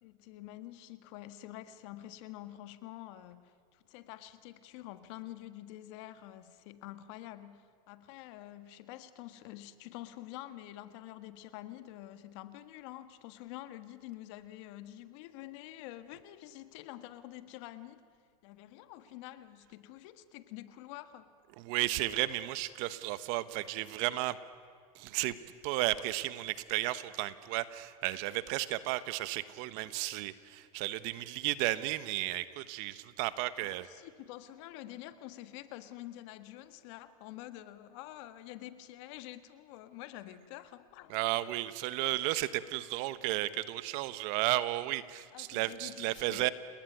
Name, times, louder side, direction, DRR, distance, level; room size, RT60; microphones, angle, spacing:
voice 1, 0.0-18.0 18.4-21.3 29.8-30.2 33.6-41.2 45.3-46.5, left 14 dB, 55° left, 12 dB, 1.6 m, -47 dB
voice 2, 21.6-24.4 24.9-25.4 25.6-33.9 41.1-46.5, right 17 dB, 50° right, 15 dB, 1.2 m, -33 dB
30.0 x 19.5 x 9.3 m, 2.1 s
supercardioid pair, 140°, 18 cm